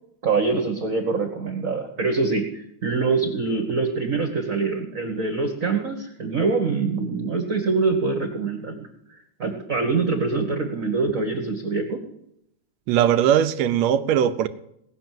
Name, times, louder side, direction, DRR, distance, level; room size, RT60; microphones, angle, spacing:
voice 1, 0.2-8.9 9.4-12.0, right 4 dB, 40° right, 1.2 m, -24 dB
voice 2, 12.9-14.5, right 9 dB, 75° right, 1.8 m, -19 dB
19.0 x 6.4 x 7.5 m
omnidirectional pair, 3.4 m